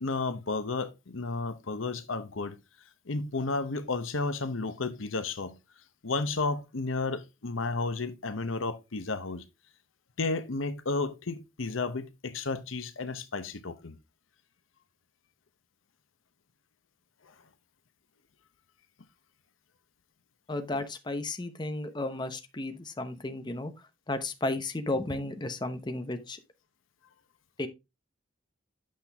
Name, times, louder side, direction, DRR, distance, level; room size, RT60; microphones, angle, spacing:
voice 1, 0.0-2.6 3.1-9.4 10.2-14.0 17.2-17.3, left 3 dB, 85° left, 0.9 m, -32 dB
voice 2, 20.5-23.7 24.1-26.4 27.6-27.7, left 2 dB, 20° left, 0.8 m, -33 dB
8.5 x 5.9 x 3.5 m
head